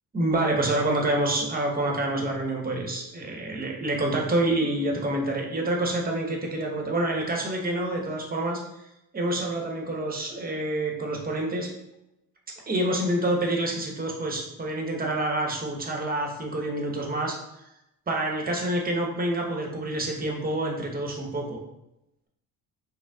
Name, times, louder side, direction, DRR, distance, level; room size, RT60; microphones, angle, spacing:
voice 1, 0.1-8.6 9.1-11.7 12.7-17.4 18.1-21.6, right 1 dB, 20° right, 1 dB, 1.0 m, -27 dB
6.2 x 2.1 x 2.3 m, 0.88 s
supercardioid pair, 75°, 39 cm